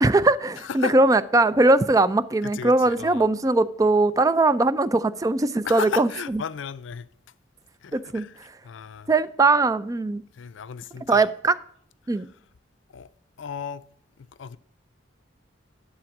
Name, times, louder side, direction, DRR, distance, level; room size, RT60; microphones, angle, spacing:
voice 1, 0.0-6.1 7.9-8.2 9.1-10.2 11.1-11.6 12.1-12.3, right 2 dB, 20° right, 0.3 m, -20 dB
voice 2, 0.6-1.0 2.4-3.3 5.6-7.1 7.8-9.1 10.3-11.3 12.1-12.2 12.9-13.1 13.4-13.8 14.2-14.6, left 6 dB, 75° left, 0.4 m, -35 dB
10.5 x 4.3 x 5.9 m
head